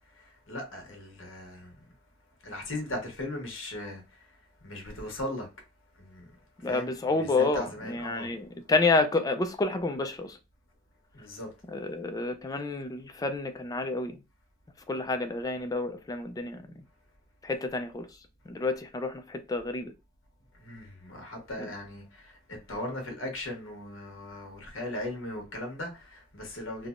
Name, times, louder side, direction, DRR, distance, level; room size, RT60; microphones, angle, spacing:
voice 1, 0.1-1.9 2.4-4.0 4.6-5.5 6.0-6.3 6.6-8.4 11.1-11.5 20.6-26.9, left 1 dB, 70° left, 1.1 m, -38 dB
voice 2, 6.6-10.4 11.7-14.2 14.9-16.6 17.4-18.1 18.5-19.9 21.6-21.7, left 3 dB, 20° left, 0.3 m, -29 dB
3.3 x 2.1 x 2.4 m
head